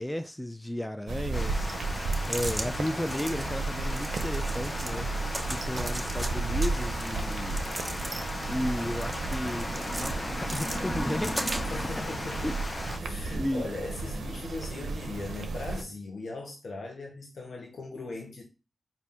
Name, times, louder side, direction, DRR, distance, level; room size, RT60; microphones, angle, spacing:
voice 1, 0.0-5.1 5.5-7.6 8.5-11.4 12.4-12.6 13.2-13.7, left 1 dB, 10° left, 0.3 m, -34 dB
sound 1, 1.1-15.8, right 3 dB, 90° right, 0.5 m, -34 dB
Water, 1.3-13.0, left 1 dB, 40° left, 0.7 m, -36 dB
sound 2, 2.1-2.7 3.0-3.5 3.9-5.0 5.3-6.3 6.6-8.4 8.8-10.1 10.5-11.9, right 1 dB, 10° right, 0.8 m, -38 dB
voice 2, 11.7-12.6 13.0-18.4, left 3 dB, 80° left, 0.8 m, -39 dB
4.2 x 2.5 x 3.5 m
cardioid pair, 55°, 0 cm